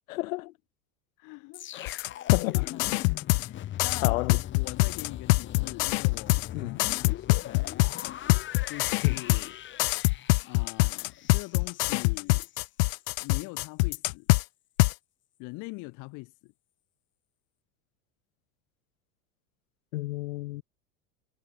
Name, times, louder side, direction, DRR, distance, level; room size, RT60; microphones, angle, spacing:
voice 1, 0.1-0.5 1.7-2.0 2.3-2.6 4.0-4.4 6.5-6.8 9.0-9.2 19.9-20.6, left 19 dB, 90° left, 2.9 m, -31 dB
voice 2, 1.2-1.9 2.4-3.1 3.4-8.2 8.7-9.6 10.4-12.5 13.2-14.3 15.4-16.5, left 26 dB, 50° left, 3.3 m, -43 dB
sound 1, 1.5-12.6 13.0-13.2, left 12 dB, 30° left, 2.6 m, -41 dB
sound 2, 1.9-3.5 3.8-6.5 6.8-9.5 9.8-14.4 14.8-14.9, left 28 dB, 65° left, 0.9 m, -24 dB
supercardioid pair, 165°, 39 cm